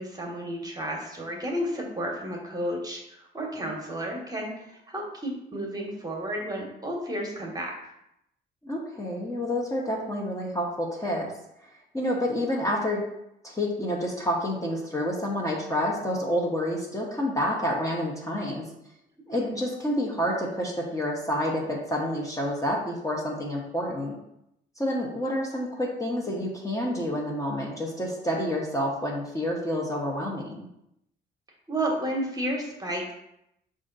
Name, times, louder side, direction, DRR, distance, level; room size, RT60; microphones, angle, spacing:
voice 1, 0.0-7.7 19.3-19.6 31.7-33.1, right 1 dB, 20° right, 0 dB, 1.2 m, -32 dB
voice 2, 8.6-11.3 11.9-13.0 13.4-18.7 19.3-24.2 24.8-30.7, equal, 15° left, -3 dB, 0.9 m, -28 dB
5.0 x 2.6 x 3.9 m, 0.81 s
cardioid pair, 90°, 20 cm